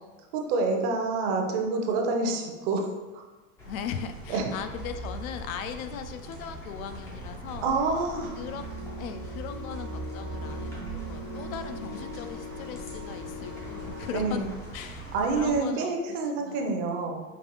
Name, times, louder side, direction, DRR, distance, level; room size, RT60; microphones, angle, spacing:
voice 1, 0.3-2.9 4.3-4.5 7.6-8.4 14.1-14.4 15.1-17.2, right 3 dB, 40° right, 3 dB, 0.6 m, -27 dB
sound 1, 3.6-15.6, right 2 dB, 5° left, 0.3 m, -40 dB
voice 2, 3.7-7.8 8.4-8.6 9.0-14.4 14.7-16.7, left 8 dB, 70° left, 8 dB, 0.5 m, -39 dB
sound 2, 8.2-14.4, left 2 dB, 90° left, 1.3 m, -41 dB
5.2 x 2.4 x 3.0 m, 1.2 s
supercardioid pair, 135°, 43 cm